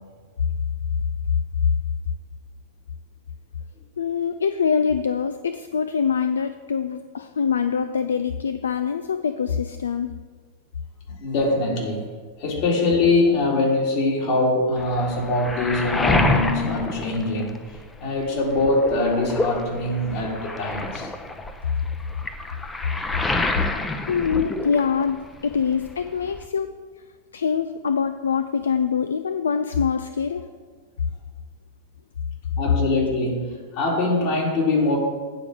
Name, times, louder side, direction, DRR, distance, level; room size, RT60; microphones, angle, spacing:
voice 1, 4.0-10.2 24.1-26.7 27.3-30.4, left 6 dB, 70° left, 9 dB, 0.3 m, -24 dB
voice 2, 11.1-12.1 12.4-21.1 32.6-35.0, left 2 dB, 45° left, -2 dB, 2.5 m, -23 dB
Waves surf, 14.8-18.0 18.3-25.3 25.5-26.5, left 2 dB, 10° left, 0.7 m, -28 dB
9.0 x 4.8 x 6.5 m, 1.5 s
figure-of-eight pair, 90°, 0 cm